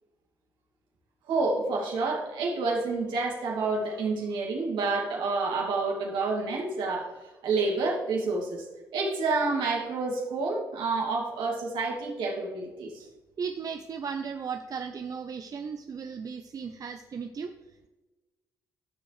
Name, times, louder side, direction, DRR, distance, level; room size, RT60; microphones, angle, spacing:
voice 1, 1.3-7.1 7.4-8.6 8.9-13.0, right 3 dB, 75° right, -1 dB, 2.5 m, -29 dB
voice 2, 13.4-17.5, right 6 dB, 50° right, 7 dB, 0.6 m, -36 dB
13.5 x 6.9 x 3.3 m, 1.1 s
hypercardioid pair, 50°, 8 cm